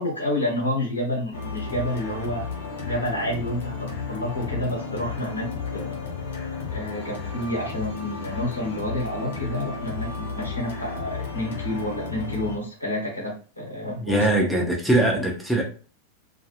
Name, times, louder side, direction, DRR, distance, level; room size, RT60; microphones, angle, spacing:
voice 1, 0.0-2.5 2.8-6.0 6.7-14.3, left 1 dB, 85° left, 1.1 m, -29 dB
sound 1, 1.3-12.6, left 4 dB, 60° left, 0.9 m, -33 dB
voice 2, 14.0-15.6, right 1 dB, ahead, 0.6 m, -21 dB
2.3 x 2.2 x 3.0 m
figure-of-eight pair, 90°, 0 cm